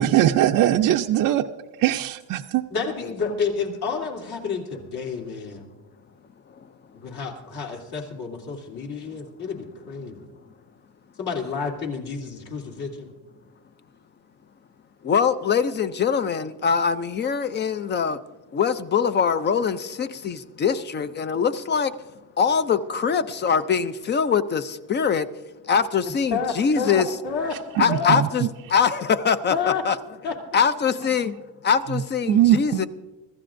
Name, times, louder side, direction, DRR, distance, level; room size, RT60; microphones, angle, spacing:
voice 1, 0.0-1.4 1.8-2.6 27.8-28.5 32.3-32.9, right 12 dB, 45° right, 0.5 m, -20 dB
voice 2, 2.7-5.6 6.9-10.2 11.2-13.1 26.3-27.5 27.9-28.2 29.5-29.8 30.2-30.3, left 5 dB, 55° left, 3.0 m, -30 dB
voice 3, 15.0-18.2 18.5-21.9 22.4-25.3 25.7-27.1 27.8-29.5 29.8-30.0 30.5-31.4 31.6-32.9, left 6 dB, 25° left, 0.4 m, -23 dB
25.0 x 14.5 x 2.6 m
cardioid pair, 145°, 45 cm